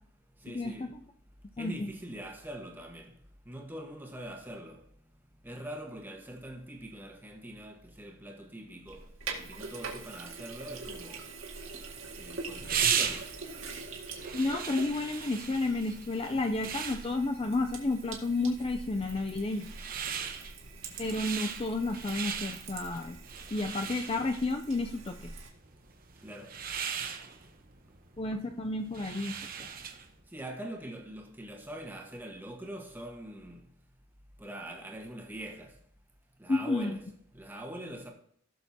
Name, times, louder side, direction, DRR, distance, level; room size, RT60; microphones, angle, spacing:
voice 1, 0.4-0.9 1.6-3.1 3.4-4.8 5.4-9.0 9.3-11.2 12.2-13.2 26.2-26.5 30.3-33.7 34.4-35.7 36.4-38.1, right 1 dB, 10° right, 1.5 m, -43 dB
voice 2, 1.6-1.9 14.3-19.7 21.0-23.2 23.5-25.3 28.2-29.7 36.5-37.0, left 2 dB, 25° left, 0.4 m, -31 dB
Sink (filling or washing), 8.9-25.5, right 4 dB, 70° right, 2.0 m, -44 dB
sound 1, 11.6-30.2, right 7 dB, 45° right, 0.9 m, -38 dB
16.5 x 6.7 x 2.8 m
head